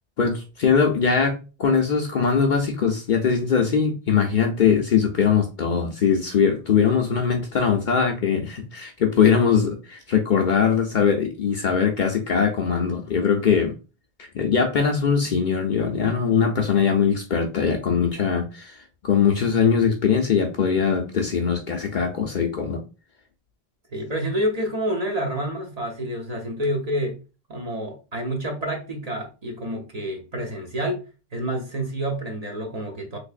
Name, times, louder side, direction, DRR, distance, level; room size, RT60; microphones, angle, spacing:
voice 1, 0.2-13.7 14.2-22.8, left 6 dB, 55° left, 0.6 m, -21 dB
voice 2, 23.9-27.2 27.5-31.0 31.3-33.2, equal, 40° right, 0.7 m, -28 dB
3.3 x 3.3 x 2.4 m
omnidirectional pair, 1.2 m